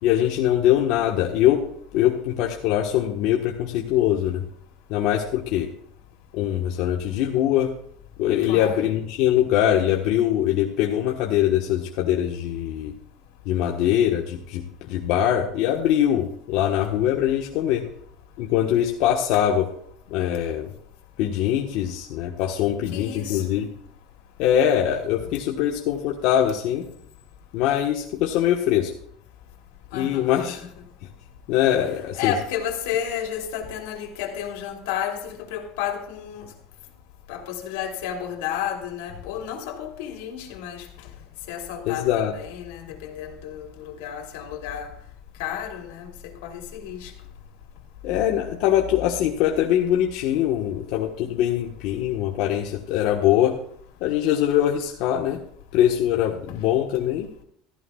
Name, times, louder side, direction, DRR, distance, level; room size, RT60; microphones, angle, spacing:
voice 1, 0.0-1.6 1.9-4.4 4.9-5.7 6.3-7.7 8.2-12.9 13.4-17.9 18.4-19.7 20.1-20.7 21.2-23.7 24.4-26.9 27.5-28.9 29.9-30.6 31.5-32.3 41.9-42.3 48.0-53.6 54.0-55.4 55.7-57.3, left 11 dB, 60° left, 0 dB, 1.3 m, -22 dB
voice 2, 8.4-8.9 22.9-23.4 29.9-30.8 32.1-36.5 37.3-41.1 41.5-44.9 45.4-47.1, left 9 dB, 85° left, 3 dB, 3.1 m, -32 dB
15.5 x 14.5 x 2.4 m, 0.68 s
cardioid pair, 160°, 0 cm